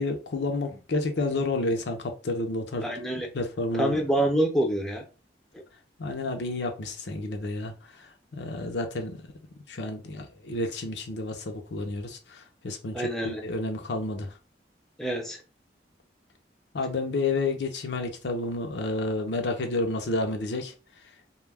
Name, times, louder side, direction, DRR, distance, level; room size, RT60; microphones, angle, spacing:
voice 1, 0.0-2.8 3.3-3.9 6.0-7.7 8.3-9.2 9.7-14.3 16.7-20.7, left 2 dB, 75° left, 0.6 m, -30 dB
voice 2, 2.8-3.3 3.7-5.0 12.9-13.4 15.0-15.4, right 1 dB, ahead, 0.4 m, -26 dB
2.3 x 2.1 x 3.2 m
head